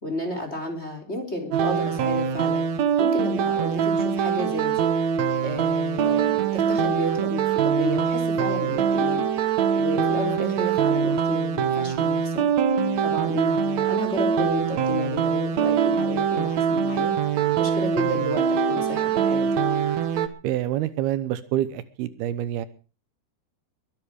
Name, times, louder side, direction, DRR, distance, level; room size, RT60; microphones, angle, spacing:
voice 1, 0.0-2.6 3.0-4.9 5.4-12.5 13.0-17.1 17.6-19.5, left 1 dB, 15° left, 5 dB, 3.4 m, -32 dB
sound 1, 1.5-20.3, right 7 dB, 60° right, 2.0 m, -23 dB
voice 2, 20.4-22.7, right 12 dB, 80° right, 14 dB, 2.8 m, -27 dB
22.5 x 10.5 x 4.9 m, 0.35 s
omnidirectional pair, 4.6 m